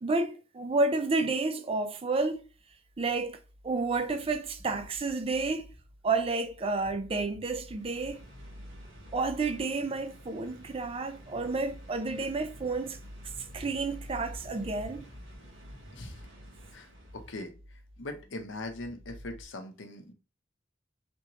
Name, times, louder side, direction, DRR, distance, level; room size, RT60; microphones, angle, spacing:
voice 1, 0.0-2.4 3.0-3.4 3.6-5.7 6.0-8.2 9.1-13.0 13.5-15.0, right 3 dB, 30° right, 0.4 m, -30 dB
sound 1, 2.3-19.4, equal, 10° left, 0.9 m, -50 dB
sound 2, 7.5-17.5, right 1 dB, 75° right, 1.4 m, -54 dB
voice 2, 17.1-17.5 18.0-20.1, left 2 dB, 70° left, 0.7 m, -40 dB
3.4 x 2.9 x 2.9 m
head